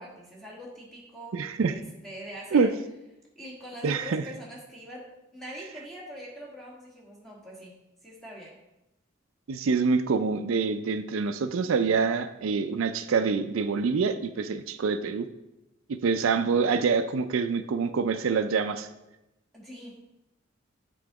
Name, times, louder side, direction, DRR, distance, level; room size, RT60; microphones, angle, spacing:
voice 1, 0.0-2.7 3.3-7.7 8.0-8.6 19.5-20.0, equal, ahead, -4 dB, 1.6 m, -43 dB
voice 2, 1.3-1.7 2.5-2.7 3.8-4.2 9.5-15.3 15.9-18.9, right 5 dB, 85° right, 10 dB, 0.4 m, -26 dB
8.2 x 3.8 x 4.8 m, 0.93 s
head